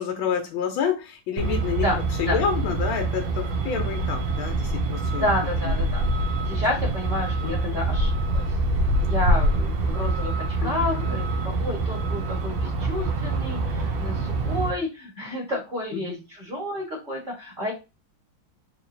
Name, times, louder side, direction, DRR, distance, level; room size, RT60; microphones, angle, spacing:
voice 1, 0.0-1.9 2.2-5.3 7.4-7.8 10.6-11.2 15.9-16.2, left 7 dB, 80° left, 3 dB, 1.5 m, -29 dB
Truck, 1.4-14.7, right 2 dB, 75° right, 1.3 m, -25 dB
voice 2, 5.2-6.0 6.4-8.4 9.0-17.7, left 1 dB, 25° right, -2 dB, 1.3 m, -30 dB
3.6 x 3.0 x 2.6 m, 0.27 s
omnidirectional pair, 2.2 m